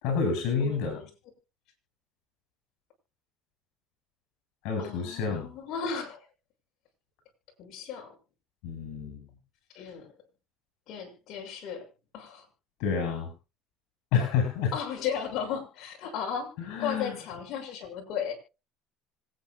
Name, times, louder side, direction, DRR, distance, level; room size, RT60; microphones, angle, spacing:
voice 1, 0.0-1.0 4.6-5.5 8.6-9.2 12.8-13.3 14.1-14.7 16.7-17.1, left 6 dB, 75° left, 4 dB, 5.4 m, -28 dB
voice 2, 0.6-1.1 4.8-6.3 7.6-8.1 9.7-10.1 10.9-11.9 12.1-12.5 14.7-16.5 16.8-18.3, left 7 dB, 60° left, 1 dB, 6.2 m, -35 dB
26.0 x 9.3 x 2.3 m, 0.29 s
supercardioid pair, 115°, 0 cm